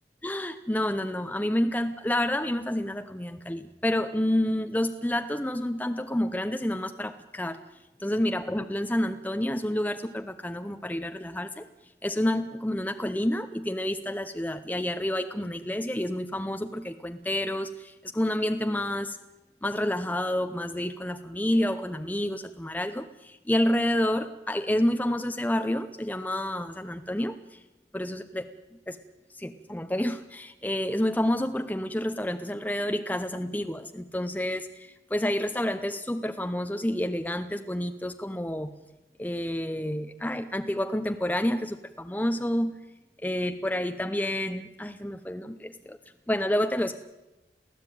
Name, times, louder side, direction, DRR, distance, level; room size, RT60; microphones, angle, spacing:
voice 1, 0.2-7.6 8.0-11.7 12.0-19.2 19.6-27.6 27.9-28.5 28.9-29.0 29.3-38.7 39.2-42.8 43.2-46.0 46.3-47.0, left 1 dB, 10° left, 8 dB, 0.8 m, -29 dB
23.5 x 16.0 x 9.2 m, 1.0 s
head